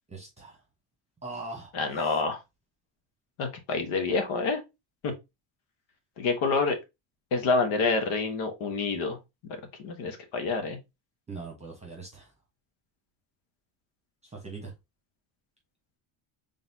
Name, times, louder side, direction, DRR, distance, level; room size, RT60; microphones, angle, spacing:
voice 1, 0.1-0.6 1.2-2.2 11.3-12.3 14.2-14.7, right 3 dB, 15° right, 1.0 m, -41 dB
voice 2, 1.7-2.4 3.4-4.6 5.0-5.1 6.2-6.8 7.3-9.2 9.8-10.8, left 4 dB, 85° left, 1.3 m, -27 dB
4.1 x 3.5 x 2.7 m
cardioid pair, 140°, 46 cm